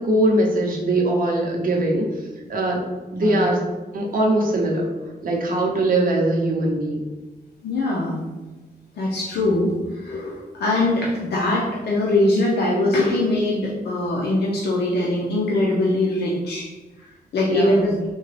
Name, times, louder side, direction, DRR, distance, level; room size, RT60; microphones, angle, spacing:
voice 1, 0.0-2.1 2.5-2.8 3.1-3.6 3.9-4.8 5.2-7.1 17.5-17.9, right 1 dB, 60° right, -1 dB, 0.7 m, -21 dB
voice 2, 7.6-8.2 9.0-16.7 17.0-17.9, left 2 dB, 85° left, -4 dB, 0.6 m, -22 dB
3.7 x 2.2 x 3.2 m, 1.2 s
wide cardioid pair, 125°, 17 cm